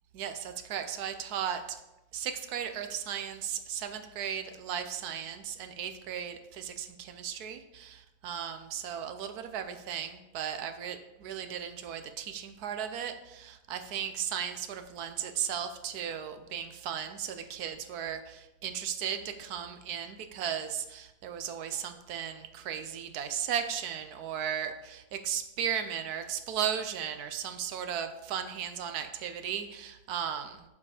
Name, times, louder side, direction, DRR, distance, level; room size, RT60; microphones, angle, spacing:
voice 1, 0.1-1.8 2.1-30.6, right 8 dB, 80° right, 8 dB, 1.1 m, -36 dB
7.1 x 4.7 x 4.9 m, 0.94 s
omnidirectional pair, 1.7 m